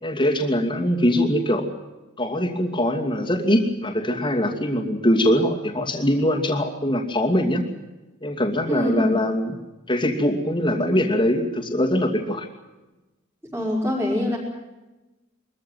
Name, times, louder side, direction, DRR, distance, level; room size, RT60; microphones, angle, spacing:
voice 1, 0.0-1.6 2.2-7.6 8.2-9.6 9.9-12.5, equal, 25° left, 3 dB, 2.5 m, -22 dB
voice 2, 8.7-9.1 13.5-14.4, left 1 dB, 10° right, -4 dB, 5.3 m, -24 dB
23.0 x 14.0 x 9.4 m, 1.1 s
head